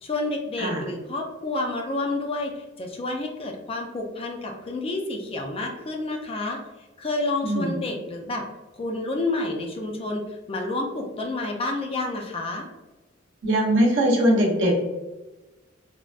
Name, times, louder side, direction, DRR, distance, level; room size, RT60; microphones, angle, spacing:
voice 1, 0.0-6.6 7.0-8.4 8.7-12.7, left 2 dB, 30° left, 2 dB, 0.4 m, -29 dB
voice 2, 7.4-7.7 13.4-14.7, right 1 dB, 65° right, -2 dB, 0.8 m, -21 dB
3.3 x 2.1 x 2.4 m, 1.1 s
head